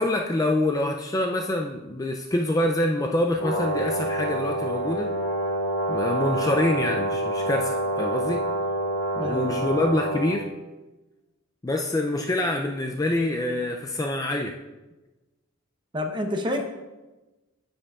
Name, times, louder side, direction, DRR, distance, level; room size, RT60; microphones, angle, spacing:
voice 1, 0.0-5.1 5.9-8.4 9.2-10.5 11.6-14.6, left 1 dB, 15° left, 2 dB, 0.4 m, -26 dB
Brass instrument, 3.4-10.4, right 1 dB, 80° left, 2.4 m, -27 dB
voice 2, 9.2-9.7 15.9-16.6, left 1 dB, 20° right, 4 dB, 0.8 m, -28 dB
9.7 x 7.9 x 2.4 m, 1.1 s
head